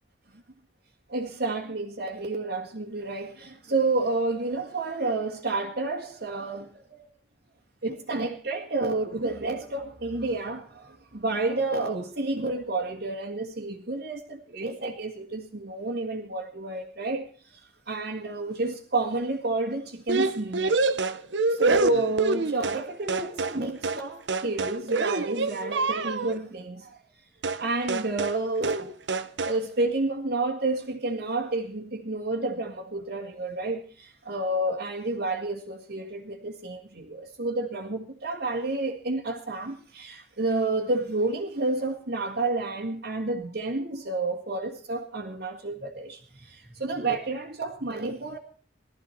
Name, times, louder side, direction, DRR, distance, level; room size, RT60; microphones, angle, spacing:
voice 1, 1.1-7.1 7.8-20.8 21.5-27.0 27.6-28.9 29.4-48.4, right 2 dB, 65° right, 2.0 m, -30 dB
sound 1, 20.1-22.8 23.1-23.6 23.8-24.0 24.3-26.4 27.4-27.6 27.9-28.4 28.6-28.8 29.1-29.6, right 3 dB, 80° right, 0.9 m, -27 dB
19.0 x 13.5 x 4.5 m
head